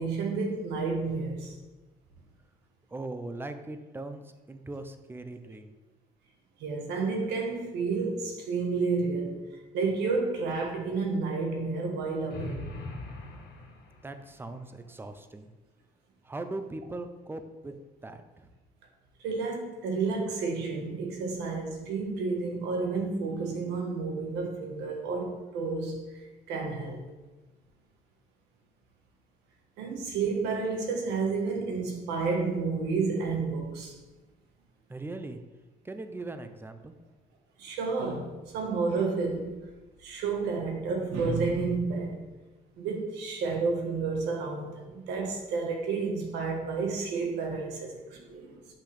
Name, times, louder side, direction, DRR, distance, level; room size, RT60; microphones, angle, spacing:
voice 1, 0.0-1.6 6.6-9.3 9.7-12.6 19.2-26.0 26.5-27.0 29.8-33.9 37.6-39.6 40.0-42.2 42.8-48.6, right 4 dB, 90° right, 1 dB, 1.5 m, -30 dB
voice 2, 2.9-5.7 14.0-15.5 16.2-17.7 18.0-18.5 34.9-35.4 35.8-36.9, right 2 dB, 15° right, 8 dB, 0.6 m, -40 dB
sound 1, 12.3-14.4, left 2 dB, 70° left, 1.7 m, -41 dB
7.8 x 5.8 x 3.4 m, 1.1 s
cardioid pair, 110°, 17 cm